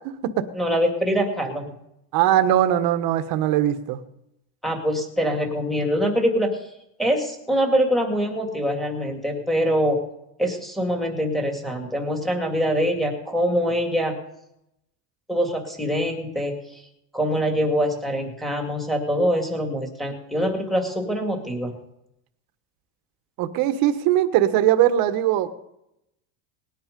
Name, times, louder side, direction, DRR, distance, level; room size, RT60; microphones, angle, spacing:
voice 1, 0.5-1.7 4.6-6.6 7.0-10.0 10.4-14.2 15.3-16.8 17.1-21.7, equal, ahead, 1 dB, 2.2 m, -24 dB
voice 2, 2.1-4.0 23.4-25.5, right 12 dB, 45° right, 10 dB, 1.3 m, -20 dB
19.5 x 10.5 x 5.2 m, 0.83 s
cardioid pair, 155°, 46 cm